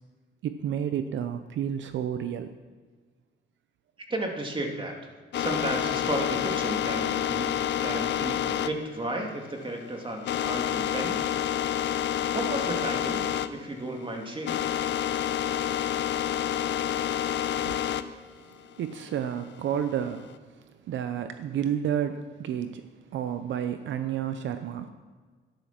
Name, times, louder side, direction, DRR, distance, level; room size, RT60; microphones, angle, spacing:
voice 1, 0.4-2.5 17.7-17.8 18.8-20.3 20.9-22.9 23.1-24.9, right 9 dB, 70° right, 9 dB, 0.7 m, -30 dB
voice 2, 4.1-7.5 7.8-11.2 11.5-11.7 12.3-14.6, right 1 dB, 25° right, 2 dB, 2.6 m, -33 dB
sound 1, 5.3-13.5 13.8-18.1 18.5-20.3, left 10 dB, 65° left, 0.7 m, -29 dB
13.0 x 10.5 x 5.9 m, 1.5 s
cardioid pair, 90°, 20 cm